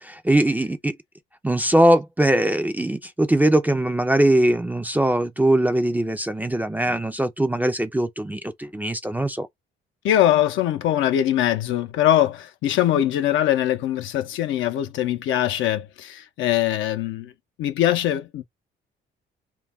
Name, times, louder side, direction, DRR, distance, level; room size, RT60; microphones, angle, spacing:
voice 1, 0.0-1.0 1.4-9.5, right 1 dB, 10° right, 0.3 m, -21 dB
voice 2, 10.0-17.3 17.6-18.4, left 12 dB, 80° left, 0.5 m, -22 dB
2.3 x 2.1 x 3.4 m
cardioid pair, 90°, 20 cm